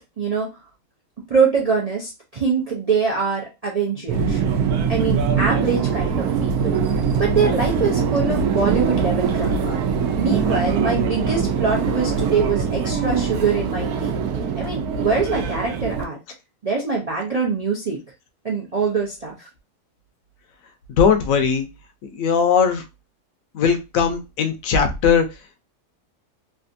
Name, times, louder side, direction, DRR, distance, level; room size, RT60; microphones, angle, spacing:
voice 1, 0.2-0.5 1.3-4.4 4.9-6.8 7.2-9.8 10.2-14.2 14.6-16.2 16.6-18.0 18.4-19.5, right 5 dB, 65° right, -3 dB, 0.3 m, -23 dB
Subway metro underground, 4.1-16.0, right 6 dB, 80° right, 1.1 m, -22 dB
voice 2, 20.9-21.7 22.1-22.8 23.5-25.2, left 6 dB, 70° left, 7 dB, 1.0 m, -19 dB
3.3 x 2.5 x 2.5 m, 0.25 s
omnidirectional pair, 1.6 m